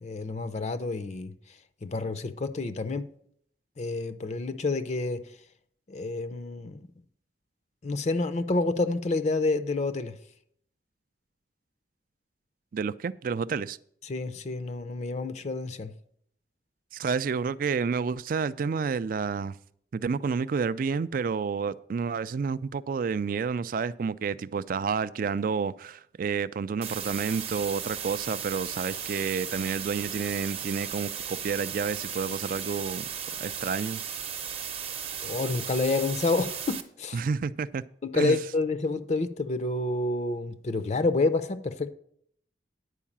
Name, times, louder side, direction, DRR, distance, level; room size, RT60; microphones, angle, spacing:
voice 1, 0.0-1.3 1.8-3.1 3.8-5.2 5.9-6.9 7.8-10.2 14.0-15.9 35.2-37.2 38.0-41.9, left 3 dB, 40° left, 0.5 m, -28 dB
voice 2, 12.7-13.8 16.9-19.5 19.9-33.0 33.4-34.0 37.1-37.8 38.1-38.4, right 5 dB, 50° right, 0.3 m, -30 dB
sound 1, 26.8-36.8, right 8 dB, 35° right, 0.7 m, -36 dB
10.0 x 4.7 x 7.2 m
head